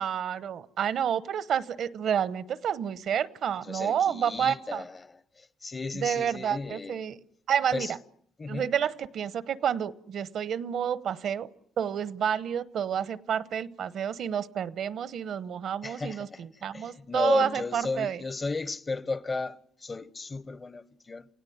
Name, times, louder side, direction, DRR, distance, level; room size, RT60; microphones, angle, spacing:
voice 1, 0.0-4.8 5.9-7.2 7.5-8.0 8.5-11.5 11.8-18.2, right 8 dB, 65° right, 1.0 m, -29 dB
voice 2, 3.6-7.0 7.7-7.9 8.4-8.7 15.8-21.3, left 3 dB, 30° left, 0.9 m, -34 dB
29.0 x 17.0 x 9.4 m
cardioid pair, 90°, 0 cm